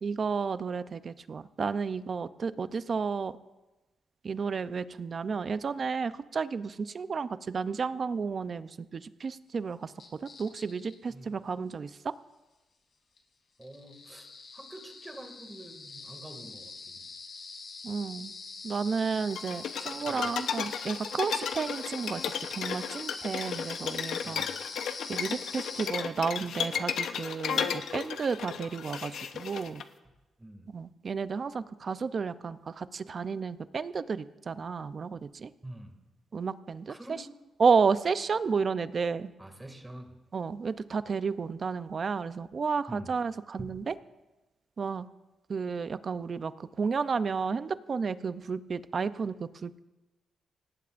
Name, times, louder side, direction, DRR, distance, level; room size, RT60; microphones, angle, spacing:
voice 1, 0.0-3.3 4.2-9.9 10.2-11.9 17.8-18.3 18.6-22.2 22.6-24.4 25.1-29.8 30.7-35.5 36.3-36.9 37.6-39.3 40.3-43.9 44.8-45.1 45.5-46.5 46.8-49.8, right 5 dB, 40° right, 13 dB, 0.6 m, -32 dB
sound 1, 10.0-10.9 13.2-13.3 13.6-25.9, left 4 dB, 60° left, 3.4 m, -43 dB
voice 2, 13.6-14.3 14.5-17.0 20.1-20.3 24.2-24.5 30.4-30.7 35.6-36.0 36.9-37.2 39.4-40.1 42.9-43.2 43.6-43.7, right 1 dB, 15° right, 4 dB, 2.3 m, -46 dB
sound 2, 19.4-29.8, left 7 dB, 85° left, 0.9 m, -34 dB
25.0 x 18.5 x 2.6 m, 1.1 s
cardioid pair, 120°, 0 cm